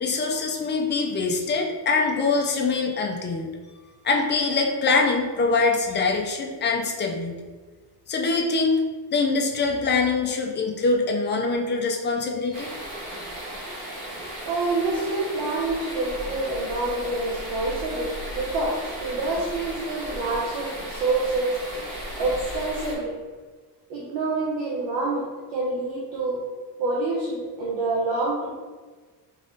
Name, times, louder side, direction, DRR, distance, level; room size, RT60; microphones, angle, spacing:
voice 1, 0.0-3.5 4.0-7.4 8.1-8.8 9.1-12.7, left 3 dB, 30° left, 1 dB, 0.3 m, -24 dB
sound 1, 12.5-22.9, equal, 60° right, 1.5 m, -35 dB
voice 2, 14.5-21.5 22.2-23.1 23.9-25.2 25.5-26.4 26.8-28.5, right 2 dB, 80° right, -4 dB, 1.0 m, -27 dB
5.0 x 3.0 x 2.7 m, 1.4 s
cardioid pair, 165°, 43 cm